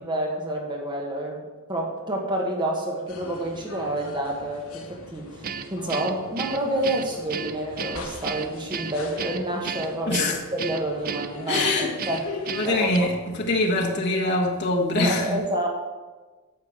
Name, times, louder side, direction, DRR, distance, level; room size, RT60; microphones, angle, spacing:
voice 1, 0.0-12.2 12.6-13.1 14.9-15.7, right 1 dB, 20° right, 1.4 m, -29 dB
sound 1, 3.1-13.2, left 3 dB, 75° left, 1.4 m, -42 dB
Guitar, 5.4-13.0, right 6 dB, 40° right, 0.5 m, -34 dB
voice 2, 10.1-10.4 11.5-11.9 12.5-15.4, left 2 dB, 50° left, 1.6 m, -24 dB
9.4 x 5.9 x 7.5 m
head